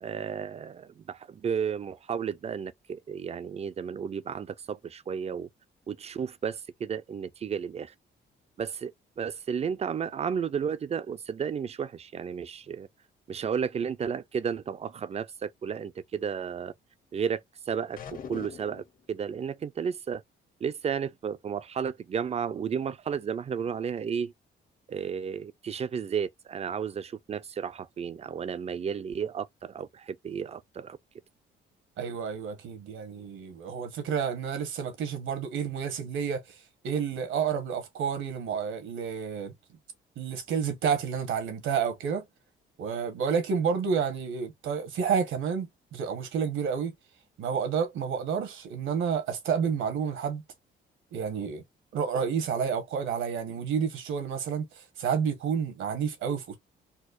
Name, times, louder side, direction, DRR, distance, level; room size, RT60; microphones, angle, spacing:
voice 1, 0.0-5.5 5.9-7.9 8.6-12.9 13.3-16.7 17.1-17.4 17.7-18.0 18.3-20.2 20.6-24.3 24.9-31.0, right 7 dB, 30° right, 0.4 m, -33 dB
sound 1, 18.0-19.0, left 7 dB, 45° left, 0.8 m, -41 dB
voice 2, 32.0-39.5 40.2-42.2 42.8-46.9 47.4-50.4 51.1-51.6 51.9-56.6, right 6 dB, 80° right, 1.3 m, -30 dB
4.3 x 2.3 x 2.5 m
cardioid pair, 90°, 20 cm